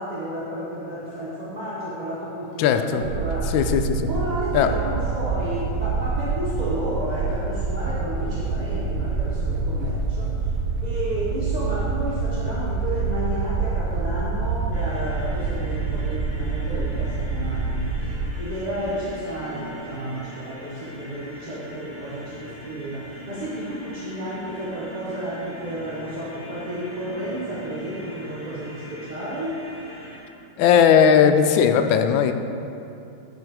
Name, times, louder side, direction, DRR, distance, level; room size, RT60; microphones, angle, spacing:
voice 1, 0.0-3.5 4.0-10.6 10.8-29.6, right 1 dB, 30° right, -8 dB, 0.8 m, -32 dB
voice 2, 2.6-3.0 3.5-4.0 4.5-4.7 30.6-32.3, left 7 dB, 80° left, 8 dB, 1.3 m, -17 dB
sound 1, 3.0-18.3, right 4 dB, 75° right, 1.2 m, -26 dB
sound 2, 14.7-30.2, equal, 40° left, 2.2 m, -41 dB
11.0 x 5.2 x 4.7 m, 2.7 s
omnidirectional pair, 2.1 m